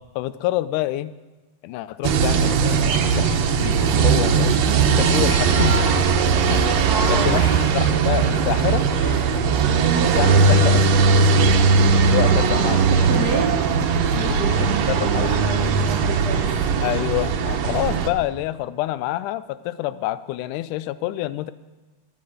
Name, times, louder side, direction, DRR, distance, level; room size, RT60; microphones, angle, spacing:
voice 1, 0.2-1.1 1.6-4.5 5.0-5.8 6.5-6.8 7.1-8.9 10.0-11.1 12.0-13.1 14.1-14.4 14.9-15.5 16.8-21.5, left 15 dB, 85° left, 15 dB, 2.1 m, -27 dB
sound 1, 2.0-18.1, right 5 dB, 65° right, 1.9 m, -19 dB
voice 2, 6.9-7.7 9.0-9.5 9.8-10.2 13.1-13.6 14.2-16.6, right 3 dB, 85° right, 1 dB, 0.8 m, -30 dB
13.0 x 9.6 x 6.4 m, 1.3 s
omnidirectional pair, 3.6 m